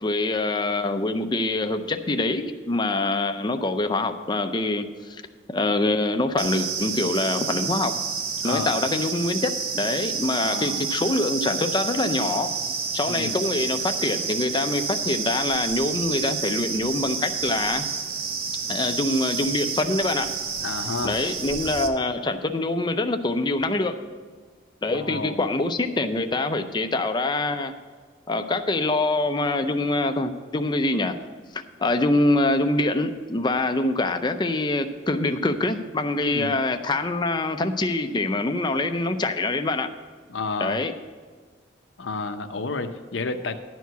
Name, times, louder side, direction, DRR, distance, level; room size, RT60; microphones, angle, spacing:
voice 1, 0.0-5.2 5.5-8.0 8.4-12.5 12.9-17.8 18.7-20.3 21.0-24.0 24.8-27.7 28.3-31.2 31.5-39.9 40.6-40.9, left 2 dB, 25° left, 7 dB, 0.5 m, -25 dB
sound 1, 6.4-21.9, right 6 dB, 50° right, 0.8 m, -29 dB
voice 2, 8.4-8.8 10.4-10.8 13.1-13.4 20.6-21.1 24.9-25.4 36.2-36.5 40.3-40.8 42.0-43.7, left 3 dB, 70° left, 8 dB, 0.7 m, -31 dB
11.5 x 4.7 x 8.0 m, 1.5 s
head